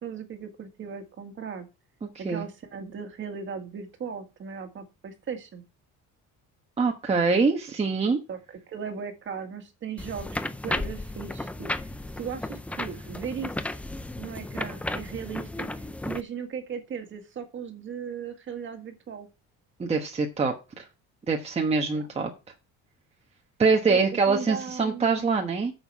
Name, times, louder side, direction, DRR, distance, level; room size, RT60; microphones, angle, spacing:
voice 1, 0.0-1.7 2.2-5.6 8.3-13.5 14.2-15.7 16.1-19.3 21.9-22.1 23.9-25.3, right 6 dB, 35° right, 6 dB, 1.7 m, -37 dB
voice 2, 6.8-8.2 19.8-20.8 21.3-22.3 23.6-25.7, right 4 dB, 20° right, 2 dB, 1.2 m, -24 dB
sound 1, 10.0-16.2, left 1 dB, 5° left, 0.4 m, -34 dB
9.6 x 7.0 x 4.6 m, 0.27 s
cardioid pair, 170°, 32 cm